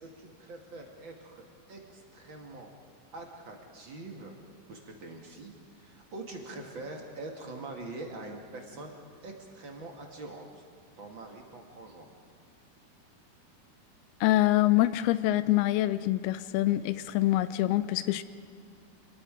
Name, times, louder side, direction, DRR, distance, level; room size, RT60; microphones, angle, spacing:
voice 1, 0.0-2.7 3.1-4.4 4.7-8.9 9.2-10.6 11.0-12.1, right 2 dB, 40° right, 1 dB, 1.9 m, -44 dB
voice 2, 14.2-18.2, left 15 dB, 85° left, 14 dB, 2.5 m, -25 dB
27.0 x 20.0 x 5.1 m, 2.3 s
omnidirectional pair, 4.5 m